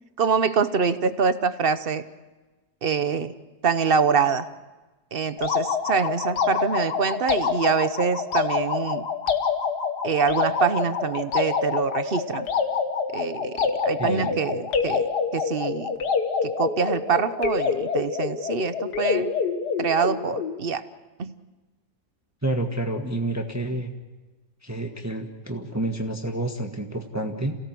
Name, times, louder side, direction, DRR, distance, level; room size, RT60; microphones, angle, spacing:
voice 1, 0.2-2.0 2.8-3.3 3.6-4.5 5.1-9.1 10.0-12.5 13.1-15.9 16.4-19.3 19.8-20.8 21.2-21.3, right 6 dB, 45° right, 12 dB, 0.9 m, -25 dB
sound 1, 5.4-20.6, left 5 dB, 85° left, 2.0 m, -26 dB
voice 2, 14.0-14.4 22.4-23.9 24.6-27.6, right 1 dB, 10° right, 3 dB, 1.4 m, -29 dB
28.0 x 17.5 x 7.6 m, 1.2 s
omnidirectional pair, 1.7 m